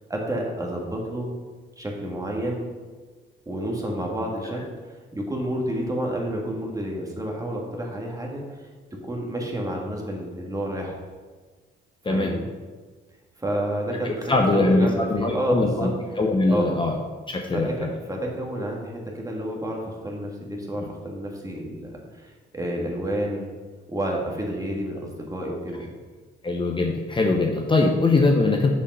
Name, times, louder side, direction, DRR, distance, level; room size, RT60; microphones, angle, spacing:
voice 1, 0.1-1.3 1.8-2.7 3.5-8.4 9.1-11.0 12.1-12.5 13.4-15.9 16.5-16.7 17.5-23.5 23.9-25.9, right 1 dB, 15° right, -1 dB, 1.7 m, -30 dB
voice 2, 14.0-15.9 16.2-17.0 17.3-17.9 20.8-20.9 26.4-28.7, left 2 dB, 25° left, 1 dB, 0.9 m, -22 dB
6.8 x 5.3 x 5.4 m, 1.4 s
cardioid pair, 90°, 20 cm